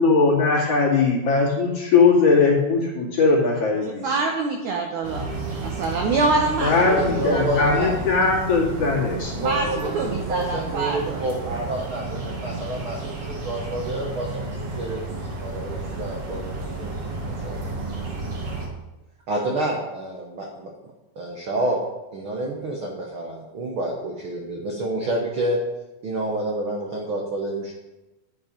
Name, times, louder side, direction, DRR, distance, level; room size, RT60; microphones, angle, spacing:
voice 1, 0.0-4.2 6.6-9.3, left 4 dB, 40° left, -4 dB, 3.2 m, -19 dB
voice 2, 4.0-5.3 5.6-7.7 9.4-11.2, right 3 dB, 70° right, 1 dB, 2.0 m, -25 dB
sound 1, 5.0-18.7, right 3 dB, 40° right, 2.6 m, -32 dB
voice 3, 6.6-8.0 9.4-16.4 16.8-17.2 17.4-17.7 19.3-20.7 21.1-21.8 22.1-25.6 26.0-27.7, right 1 dB, 85° right, -1 dB, 1.1 m, -29 dB
12.0 x 7.7 x 5.3 m, 1.0 s
omnidirectional pair, 4.5 m